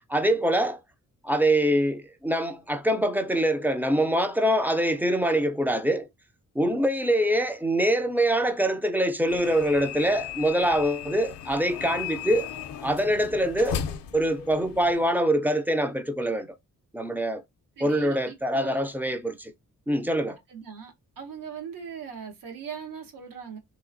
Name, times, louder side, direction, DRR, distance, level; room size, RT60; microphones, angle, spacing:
voice 1, 0.1-0.8 1.2-6.1 6.6-12.5 12.8-16.5 16.9-17.4 17.8-19.5 19.9-20.4, right 1 dB, 5° right, 0.3 m, -24 dB
sound 1, 9.3-15.1, left 9 dB, 85° left, 0.5 m, -36 dB
voice 2, 17.8-18.9 20.5-23.6, right 7 dB, 75° right, 1.0 m, -40 dB
3.3 x 2.8 x 2.5 m
wide cardioid pair, 135°, 33 cm